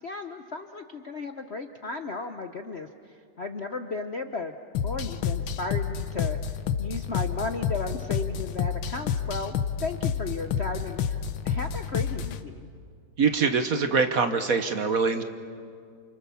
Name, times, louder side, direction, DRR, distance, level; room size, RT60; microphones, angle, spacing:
voice 1, 0.0-2.9 3.4-4.6 4.8-6.4 6.8-12.7, left 3 dB, 50° left, 7 dB, 0.8 m, -35 dB
sound 1, 4.7-12.4, left 7 dB, 80° left, 1.8 m, -29 dB
voice 2, 13.2-15.2, right 5 dB, 50° right, 8 dB, 1.3 m, -24 dB
29.0 x 29.0 x 7.1 m, 2.2 s
omnidirectional pair, 2.2 m